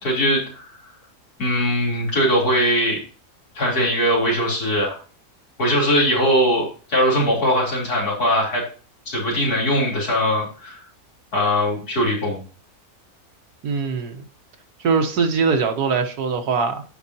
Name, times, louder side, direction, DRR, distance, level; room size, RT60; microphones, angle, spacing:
voice 1, 0.0-0.6 1.4-3.0 3.6-5.0 5.6-8.6 9.1-10.8 11.3-12.4, equal, 80° left, -4 dB, 4.1 m, -20 dB
voice 2, 13.6-14.3 14.8-16.8, right 5 dB, 90° right, 5 dB, 1.8 m, -22 dB
14.5 x 5.2 x 2.8 m, 0.38 s
omnidirectional pair, 1.6 m